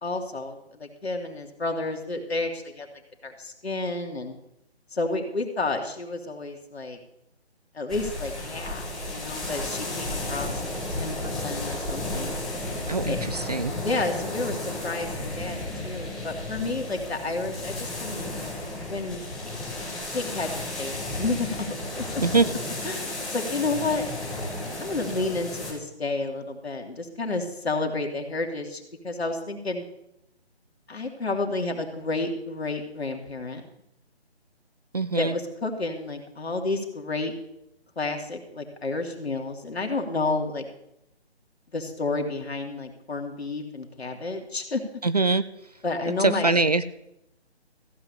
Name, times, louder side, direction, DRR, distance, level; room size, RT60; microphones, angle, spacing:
voice 1, 0.0-2.9 3.2-4.4 4.9-7.0 7.7-12.3 13.0-13.2 13.7-18.5 18.8-19.3 20.1-21.7 22.0-22.2 22.8-24.0 24.8-29.8 30.9-33.6 35.1-37.3 38.0-40.7 41.7-44.8 45.8-46.5, left 3 dB, 70° left, 3 dB, 2.5 m, -31 dB
sound 1, 7.9-25.7, left 1 dB, ahead, 1.3 m, -33 dB
voice 2, 34.9-35.3 45.0-45.4 46.2-46.8, right 3 dB, 40° right, 14 dB, 0.4 m, -22 dB
15.0 x 5.8 x 8.3 m, 0.82 s
figure-of-eight pair, 155°, 33 cm